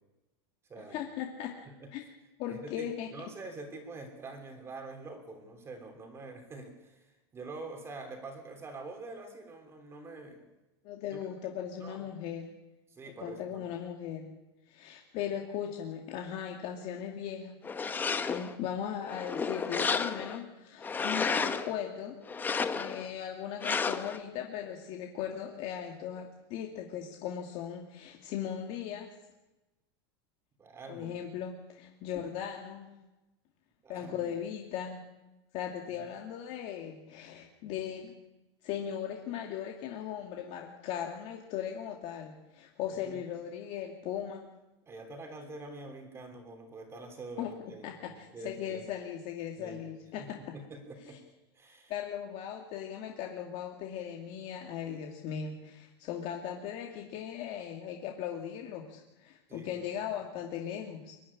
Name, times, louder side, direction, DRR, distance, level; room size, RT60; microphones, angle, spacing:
voice 1, 0.9-1.5 1.9-2.0 2.4-3.1 10.8-12.4 13.0-14.3 14.7-17.6 18.3-22.2 22.7-29.1 30.9-32.9 33.9-35.0 35.5-38.1 38.6-44.4 47.4-47.5 47.8-50.5 51.9-61.1, left 9 dB, 45° left, 1 dB, 2.4 m, -38 dB
voice 2, 2.5-10.5 11.1-11.2 11.8-12.2 12.9-13.7 30.6-31.2 33.8-34.3 35.9-36.1 43.0-43.2 44.9-47.8 48.1-48.8 49.6-49.8 50.2-51.2 51.5-51.9 59.5-59.8, right 3 dB, 20° right, 6 dB, 3.2 m, -46 dB
sound 1, 17.6-18.5 19.0-20.4 20.8-21.7 22.3-23.1 23.6-24.2, left 5 dB, 15° left, 1.0 m, -32 dB
23.5 x 11.5 x 10.0 m, 1.0 s
supercardioid pair, 150°, 14 cm